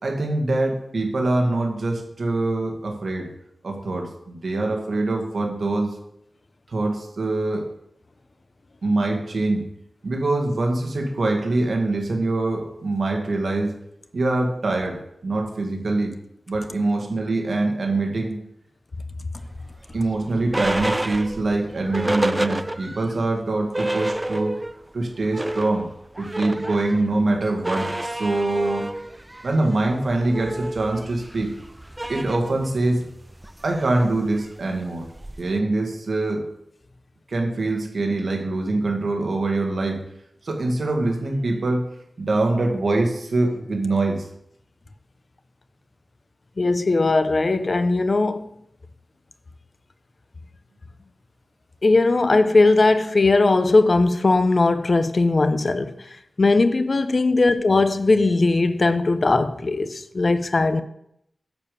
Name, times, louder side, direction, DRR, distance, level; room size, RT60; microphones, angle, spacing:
voice 1, 0.0-3.3 3.6-5.9 6.7-7.7 8.8-9.7 10.0-13.7 14.1-16.2 16.5-18.4 19.9-24.6 24.9-25.9 26.2-28.9 29.4-31.5 32.1-33.1 33.6-35.1 35.4-36.5 37.3-40.0 40.4-41.9 42.2-44.3, right 2 dB, 70° right, 2.0 m, -24 dB
sound 1, 19.5-23.1 23.5-23.6 23.7-24.8 25.1-35.6, right 1 dB, 15° right, 0.3 m, -30 dB
voice 2, 46.6-48.4 51.8-55.9 56.4-60.8, left 3 dB, 50° left, 0.7 m, -19 dB
10.0 x 5.1 x 7.0 m
wide cardioid pair, 95°, 0 cm